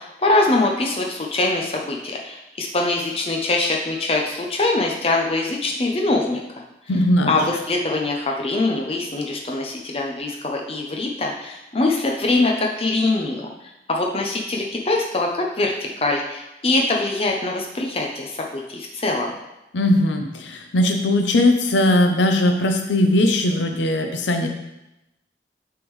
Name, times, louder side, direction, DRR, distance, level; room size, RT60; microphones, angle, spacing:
voice 1, 0.0-6.4 7.3-19.3, left 2 dB, 30° left, 0 dB, 0.6 m, -23 dB
voice 2, 6.9-7.4 19.7-24.5, left 1 dB, 90° left, 4 dB, 0.6 m, -19 dB
9.5 x 3.5 x 3.1 m, 0.93 s
head